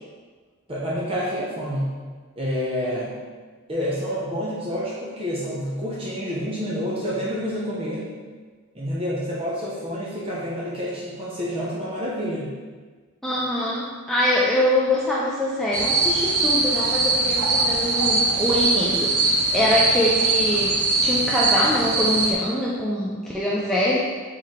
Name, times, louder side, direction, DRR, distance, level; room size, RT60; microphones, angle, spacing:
voice 1, 0.7-1.9 2.4-3.2 3.7-8.1 8.7-12.5, equal, 25° right, -6 dB, 0.7 m, -28 dB
voice 2, 13.2-24.0, left 1 dB, ahead, -7 dB, 0.3 m, -24 dB
sound 1, 15.7-22.3, right 3 dB, 80° right, 0.6 m, -21 dB
4.7 x 3.6 x 3.1 m, 1.5 s
head